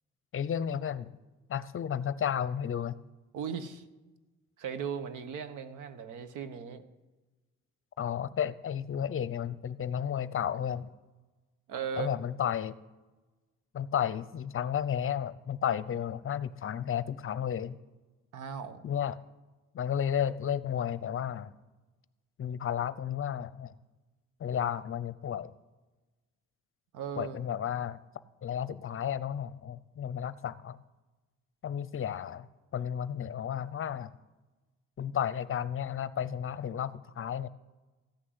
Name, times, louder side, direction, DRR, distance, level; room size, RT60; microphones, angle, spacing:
voice 1, 0.3-1.2 1.5-2.9 8.0-10.9 12.0-12.8 13.7-17.8 18.8-19.2 19.7-21.5 22.4-23.8 24.4-25.5 27.2-28.0 28.4-30.8 31.6-32.5 32.7-34.1 35.0-37.5, left 9 dB, 45° left, 16 dB, 0.7 m, -32 dB
voice 2, 3.3-3.8 4.6-6.8 11.7-12.2 18.3-18.8 26.9-27.4, right 7 dB, 85° right, 11 dB, 1.1 m, -37 dB
14.5 x 6.3 x 9.7 m, 1.2 s
cardioid pair, 90°, 30 cm